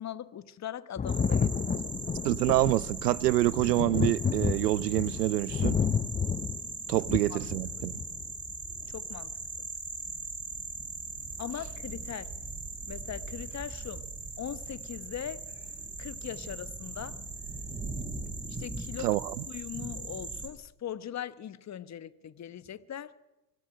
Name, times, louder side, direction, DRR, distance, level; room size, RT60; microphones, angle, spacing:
voice 1, 0.0-1.9 7.3-7.4 8.9-9.4 11.4-12.3 12.9-14.1 14.4-15.5 16.0-17.2 18.5-19.1 19.5-23.2, left 10 dB, 35° left, 1.2 m, -40 dB
Thunder, 1.0-8.3 9.4-9.5, left 6 dB, 20° left, 0.7 m, -31 dB
sound 1, 1.1-20.5, right 3 dB, 25° right, 4.7 m, -40 dB
voice 2, 2.2-5.8 6.9-7.9 19.0-19.3, right 16 dB, 80° right, 0.7 m, -26 dB
23.5 x 15.5 x 9.0 m
hypercardioid pair, 60°, 46 cm